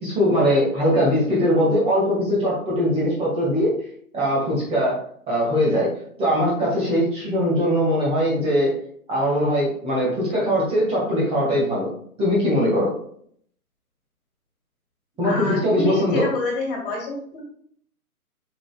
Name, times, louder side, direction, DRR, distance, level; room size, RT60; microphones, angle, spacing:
voice 1, 0.0-3.7 4.1-5.0 5.3-5.9 6.2-8.8 9.1-11.9 12.2-12.9 15.2-16.3, equal, 15° right, -5 dB, 2.0 m, -21 dB
voice 2, 15.2-17.4, left 2 dB, 35° left, 0 dB, 2.2 m, -28 dB
7.0 x 5.7 x 2.5 m, 0.62 s
figure-of-eight pair, 135°, 45 cm